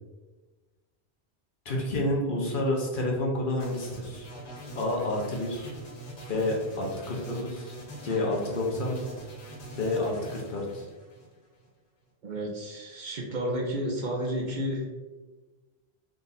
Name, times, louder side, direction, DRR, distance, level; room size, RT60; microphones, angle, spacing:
voice 1, 1.6-4.3 4.7-5.7 6.3-7.8 8.0-9.0 9.8-10.9, left 2 dB, 55° left, -2 dB, 0.9 m, -29 dB
sound 1, 3.6-11.7, right 2 dB, 85° left, 1.4 m, -43 dB
voice 2, 12.2-14.9, equal, 50° right, -2 dB, 0.7 m, -31 dB
3.7 x 2.5 x 3.9 m, 1.3 s
omnidirectional pair, 1.1 m